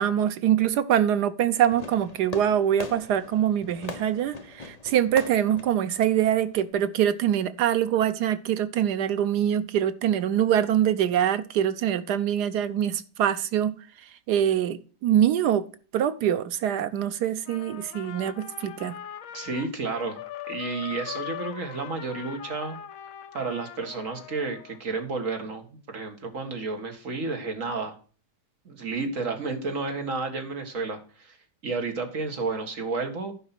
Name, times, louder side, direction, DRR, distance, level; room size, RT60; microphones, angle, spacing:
voice 1, 0.0-13.7 14.3-15.7 15.9-19.0, right 10 dB, 80° right, 12 dB, 1.3 m, -24 dB
Fireworks, 1.7-6.7, left 3 dB, 30° left, 1.0 m, -41 dB
Trumpet, 17.4-24.8, left 10 dB, 60° left, 1.1 m, -40 dB
voice 2, 19.3-20.2 20.5-22.8 23.3-28.0 28.7-31.4 31.6-33.3, right 3 dB, 50° right, 4 dB, 2.0 m, -31 dB
11.5 x 5.3 x 5.8 m, 0.38 s
omnidirectional pair, 1.8 m